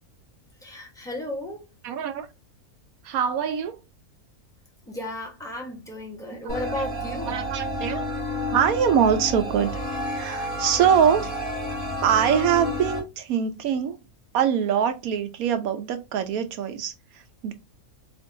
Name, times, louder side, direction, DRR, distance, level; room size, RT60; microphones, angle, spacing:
voice 1, 0.6-1.7 4.9-7.4, left 1 dB, 5° left, 0.9 m, -34 dB
voice 2, 1.8-2.3 3.0-3.8 6.4-6.8 7.3-8.1 8.5-11.3 12.0-14.0 14.3-17.5, right 8 dB, 75° right, 1.1 m, -24 dB
sound 1, 6.5-13.0, left 1 dB, 60° left, 2.3 m, -30 dB
4.5 x 2.5 x 2.6 m
omnidirectional pair, 1.6 m